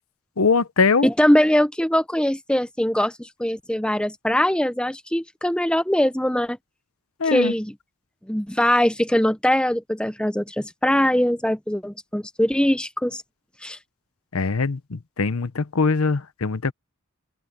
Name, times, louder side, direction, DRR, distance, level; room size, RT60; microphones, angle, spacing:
voice 1, 0.4-1.1 7.2-7.5 14.3-16.7, left 4 dB, 75° left, 0.8 m, -22 dB
voice 2, 1.0-6.6 7.3-7.7 8.3-13.2 13.6-13.8, equal, 5° left, 0.8 m, -22 dB
open air
head